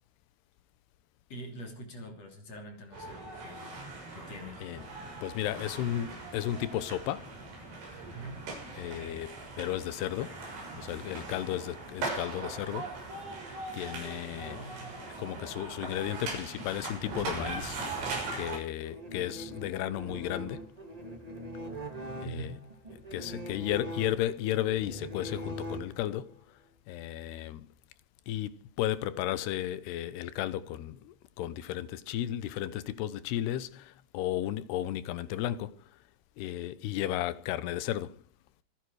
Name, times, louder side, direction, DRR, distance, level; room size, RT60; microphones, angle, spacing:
voice 1, 1.3-3.7 4.1-4.7 8.1-8.5 14.4-14.9 22.2-22.6, right 1 dB, 40° left, 3.9 m, -44 dB
sound 1, 2.9-18.6, right 3 dB, 85° right, 8.8 m, -40 dB
voice 2, 5.2-7.4 8.8-10.5 10.8-13.0 13.7-14.6 15.2-17.9 18.3-20.6 22.2-22.5 23.1-26.4 26.9-27.7 28.3-35.8 36.4-38.2, left 12 dB, 75° left, 2.8 m, -34 dB
sound 2, 18.8-26.3, equal, 30° right, 0.7 m, -42 dB
25.5 x 11.0 x 4.8 m
omnidirectional pair, 5.0 m